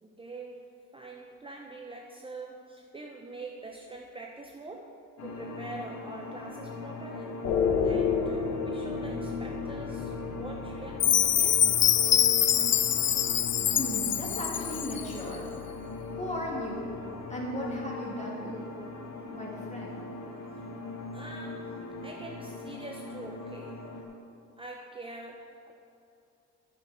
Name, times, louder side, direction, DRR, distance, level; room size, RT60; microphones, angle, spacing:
voice 1, 0.0-7.5 7.8-11.7 12.2-12.5 21.1-23.9 24.6-25.7, right 2 dB, 20° right, 0 dB, 0.7 m, -45 dB
sound 1, 5.2-24.0, left 3 dB, 70° left, 1.5 m, -40 dB
sound 2, 7.4-17.6, left 6 dB, 85° left, 1.2 m, -35 dB
Chime, 11.0-15.1, left 10 dB, 40° left, 0.4 m, -24 dB
voice 2, 13.6-15.5 16.1-16.9 17.3-18.7 19.3-20.0, left 1 dB, 20° left, -3 dB, 2.6 m, -36 dB
9.6 x 6.9 x 5.1 m, 2.5 s
cardioid pair, 90°, 30 cm